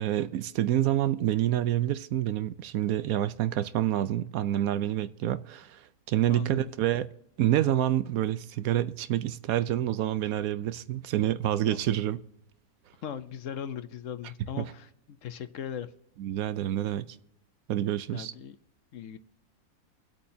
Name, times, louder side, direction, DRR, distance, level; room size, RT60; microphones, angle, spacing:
voice 1, 0.0-7.1 7.4-12.2 14.6-14.7 16.2-17.2 17.7-18.3, right 12 dB, 80° right, 1.1 m, -28 dB
voice 2, 6.3-6.7 11.7-11.8 13.0-14.9 15.2-15.9 18.1-18.5 18.9-19.2, left 8 dB, 65° left, 1.0 m, -38 dB
25.0 x 8.5 x 2.7 m
omnidirectional pair, 1.5 m